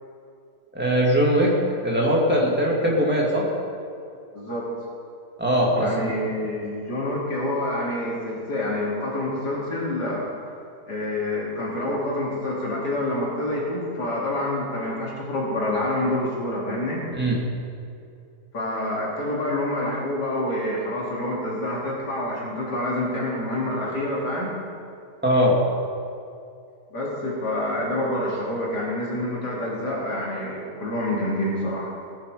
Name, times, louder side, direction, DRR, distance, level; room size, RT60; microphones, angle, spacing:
voice 1, 0.7-1.5 1.8-3.5 5.4-6.1 17.1-17.4 25.2-25.6, equal, 5° right, -3 dB, 2.7 m, -21 dB
voice 2, 4.3-4.7 5.7-10.3 10.9-17.0 18.5-24.5 26.9-31.9, left 1 dB, 75° left, -4 dB, 3.4 m, -27 dB
18.5 x 10.5 x 5.1 m, 2.4 s
omnidirectional pair, 1.8 m